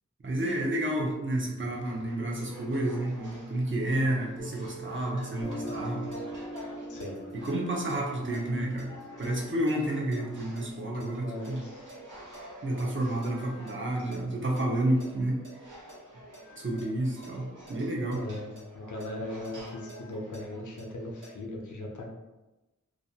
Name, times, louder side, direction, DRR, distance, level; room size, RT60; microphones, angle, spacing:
voice 1, 0.2-6.1 7.3-8.9 9.2-11.6 12.6-15.4 16.6-18.2, right 1 dB, 40° right, -2 dB, 0.5 m, -30 dB
sound 1, 1.7-21.3, right 1 dB, 70° right, 0.8 m, -49 dB
Piano, 4.4-11.4, equal, 15° left, 0.4 m, -43 dB
sound 2, 5.2-6.2 6.6-11.1 11.4-13.3 13.7-13.8 14.1-15.5 15.9-16.4 16.8-18.6 19.0-21.3, right 2 dB, 90° right, 1.1 m, -52 dB
voice 2, 6.9-7.2 10.8-11.8 18.1-22.1, left 1 dB, 70° left, 0 dB, 0.5 m, -39 dB
2.5 x 2.0 x 2.6 m, 1.0 s
wide cardioid pair, 60°, 31 cm